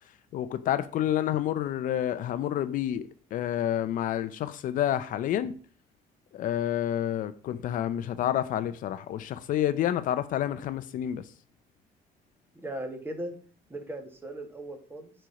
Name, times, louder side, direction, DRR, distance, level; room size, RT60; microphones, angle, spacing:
voice 1, 0.3-5.5 6.3-11.2, left 11 dB, 60° left, 0.6 m, -29 dB
voice 2, 12.5-13.3 13.7-15.1, right 1 dB, 15° right, 1.7 m, -38 dB
9.7 x 4.5 x 5.2 m
cardioid pair, 125°, 15 cm